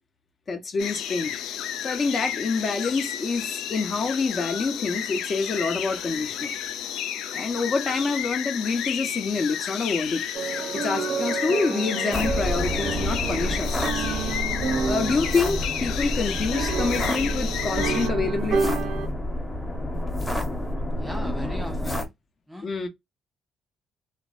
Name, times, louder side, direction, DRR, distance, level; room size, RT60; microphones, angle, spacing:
voice 1, 0.5-1.4 1.8-6.5 7.3-10.2 10.7-14.1 14.8-18.8 22.6-22.9, left 4 dB, 45° left, 0.8 m, -27 dB
sound 1, 0.8-18.1, left 9 dB, 85° left, 0.4 m, -32 dB
sound 2, 10.3-19.1, right 5 dB, 70° right, 0.6 m, -30 dB
sound 3, 12.1-22.1, left 1 dB, 15° left, 1.0 m, -29 dB
voice 2, 21.0-22.1 22.5-22.7, equal, ahead, 0.5 m, -37 dB
2.5 x 2.0 x 2.4 m
cardioid pair, 85°, 0 cm